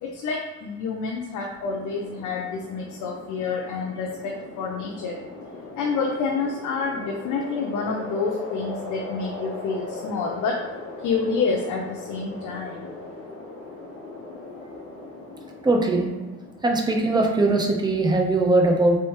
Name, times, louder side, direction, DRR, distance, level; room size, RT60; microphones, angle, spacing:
voice 1, 0.0-5.2 5.8-10.6 11.0-12.9, left 4 dB, 85° left, -1 dB, 0.7 m, -28 dB
sound 1, 1.6-17.9, left 2 dB, 45° left, 1.1 m, -39 dB
voice 2, 15.6-16.1 16.6-19.0, right 2 dB, 15° right, 1 dB, 0.8 m, -20 dB
4.1 x 3.4 x 3.1 m, 1.2 s
cardioid pair, 90°, 30 cm